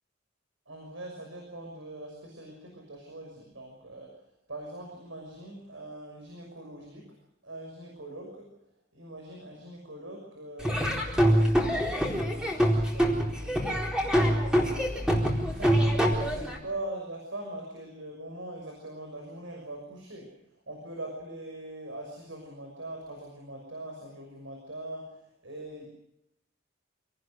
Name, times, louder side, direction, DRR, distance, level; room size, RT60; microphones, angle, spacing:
voice 1, 0.7-4.2 4.5-7.2 7.4-8.5 8.9-20.4 20.7-25.9, right 1 dB, 85° right, 1 dB, 6.2 m, -42 dB
Laughter / Drum, 10.6-16.6, equal, 5° right, 4.1 m, -25 dB
27.0 x 19.0 x 6.4 m, 0.81 s
head